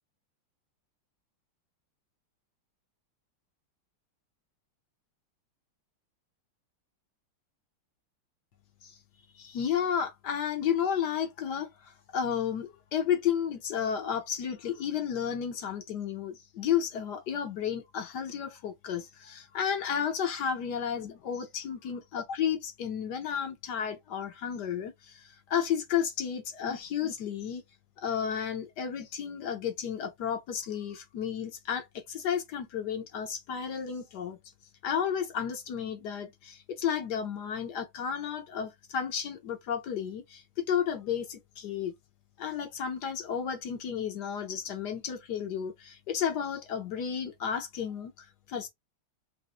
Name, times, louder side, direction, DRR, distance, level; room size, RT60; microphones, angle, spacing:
voice 1, 9.3-27.6 28.0-34.4 34.8-41.9 42.4-48.7, left 8 dB, 60° left, 1.2 m, -32 dB
4.2 x 2.2 x 3.6 m
omnidirectional pair, 2.3 m